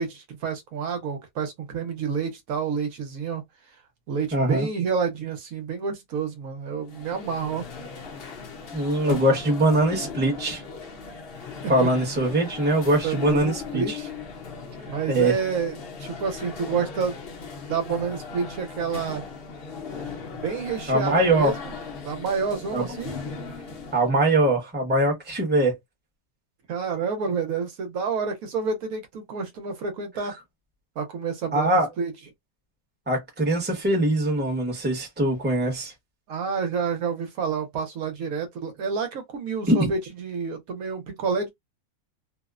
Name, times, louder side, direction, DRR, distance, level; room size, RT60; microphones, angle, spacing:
voice 1, 0.0-3.4 4.1-7.7 11.8-11.9 13.0-14.1 14.8-17.2 17.7-19.2 20.3-21.7 22.0-23.2 26.7-30.3 31.0-32.1 36.3-41.5, right 5 dB, 75° right, 1.1 m, -29 dB
voice 2, 4.3-4.7 8.7-10.6 11.7-14.0 15.1-15.3 20.9-21.5 22.7-22.8 23.9-25.8 31.5-31.9 33.1-35.9 39.7-39.9, right 1 dB, 10° right, 0.7 m, -22 dB
sound 1, 6.8-24.1, left 5 dB, 55° left, 0.8 m, -37 dB
2.8 x 2.0 x 2.3 m
omnidirectional pair, 1.5 m